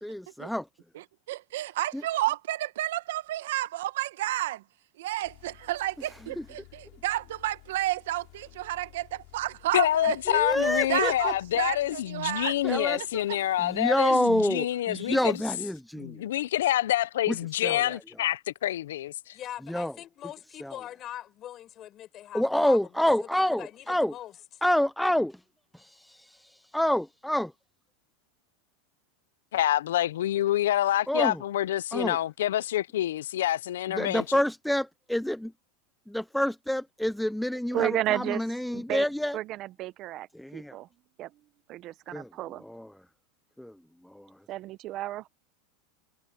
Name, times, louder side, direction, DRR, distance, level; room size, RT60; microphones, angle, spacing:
voice 1, 0.0-0.6 1.9-2.0 6.0-6.5 10.3-11.3 12.6-16.3 17.3-18.0 19.6-20.0 20.6-20.8 22.3-24.1 24.6-25.3 26.7-27.5 31.1-31.4 31.9-32.2 33.9-35.5 36.1-39.4 40.3-40.8 42.1-42.3 42.6-43.1 43.6-44.5, left 1 dB, ahead, 0.5 m, -28 dB
voice 2, 1.3-4.6 5.0-13.0, right 15 dB, 75° right, 1.3 m, -31 dB
sound 1, 5.2-14.6, left 29 dB, 55° left, 5.6 m, -55 dB
voice 3, 9.7-15.2 16.0-19.4 29.5-34.2, left 12 dB, 85° left, 0.5 m, -27 dB
voice 4, 19.3-23.1 23.6-24.3, left 12 dB, 35° left, 6.7 m, -42 dB
voice 5, 37.7-38.4 38.7-39.1 39.3-40.3 40.5-40.9 41.2-41.3 41.7-42.6 44.5-45.3, right 14 dB, 40° right, 0.9 m, -32 dB
supercardioid pair, 135°, 0 cm